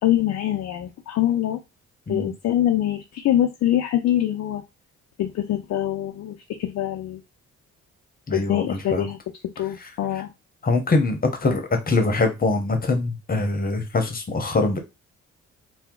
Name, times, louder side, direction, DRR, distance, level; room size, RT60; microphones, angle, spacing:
voice 1, 0.0-1.6 2.1-4.6 5.2-7.2 8.3-9.2 9.4-10.3, left 12 dB, 60° left, 5 dB, 0.5 m, -24 dB
voice 2, 8.3-9.1 10.6-14.8, left 3 dB, 30° left, 5 dB, 0.9 m, -23 dB
2.8 x 2.2 x 3.7 m, 0.24 s
cardioid pair, 90°, 30 cm